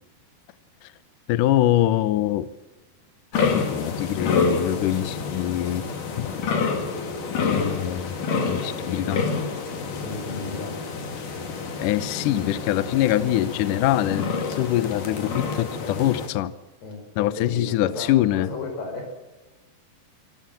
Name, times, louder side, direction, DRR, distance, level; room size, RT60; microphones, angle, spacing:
voice 1, 1.3-2.5 3.5-5.9 6.2-6.4 7.4-8.2 8.5-9.3 11.8-16.5 17.2-18.5, left 13 dB, 85° left, 15 dB, 1.8 m, -24 dB
sound 1, 3.3-16.3, left 4 dB, 55° left, 3.8 m, -28 dB
voice 2, 10.0-10.8 16.8-19.1, left 3 dB, 70° left, 5 dB, 7.0 m, -34 dB
26.5 x 15.0 x 7.6 m, 1.1 s
omnidirectional pair, 4.9 m